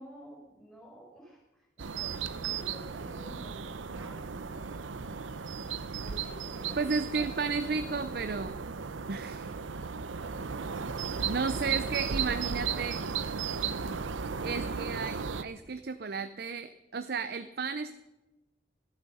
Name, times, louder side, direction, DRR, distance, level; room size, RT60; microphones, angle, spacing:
voice 1, 0.0-4.4 6.0-8.2, right 1 dB, 5° left, -3 dB, 5.4 m, -51 dB
sound 1, 1.8-15.4, right 6 dB, 90° right, 0.7 m, -35 dB
voice 2, 6.8-8.6 9.1-9.5 11.2-13.0 14.4-18.0, right 4 dB, 55° right, 10 dB, 0.6 m, -33 dB
18.0 x 11.5 x 5.5 m, 1.0 s
head